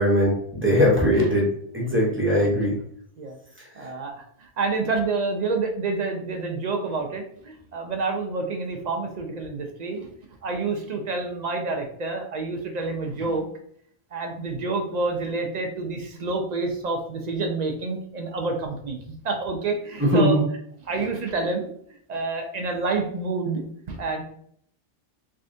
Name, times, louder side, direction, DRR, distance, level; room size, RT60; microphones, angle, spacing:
voice 1, 0.0-1.5 1.7-2.8 3.8-3.9 20.0-20.4, equal, 10° right, -4 dB, 0.8 m, -20 dB
voice 2, 3.8-10.1 10.4-13.5 14.1-19.0 19.2-20.4 20.8-21.7 22.1-24.2, right 3 dB, 45° right, 3 dB, 0.6 m, -28 dB
3.5 x 3.3 x 2.6 m, 0.65 s
omnidirectional pair, 1.2 m